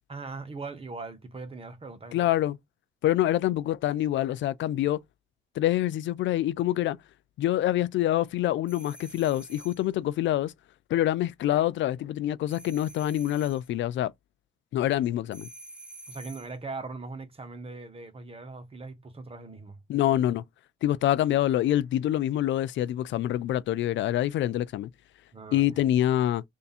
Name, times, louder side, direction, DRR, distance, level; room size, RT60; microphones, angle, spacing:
voice 1, 0.1-2.3 16.1-19.8 25.3-25.7, right 3 dB, 30° right, 1.3 m, -40 dB
voice 2, 2.1-2.6 3.0-5.0 5.6-7.0 7.4-10.5 10.9-14.1 14.7-15.5 19.9-20.4 20.8-24.9 25.5-26.4, left 13 dB, 70° left, 0.4 m, -26 dB
sound 1, 8.7-9.9 12.5-13.7 15.3-16.6, right 1 dB, 5° right, 1.3 m, -48 dB
3.4 x 2.7 x 4.1 m
cardioid pair, 90°, 20 cm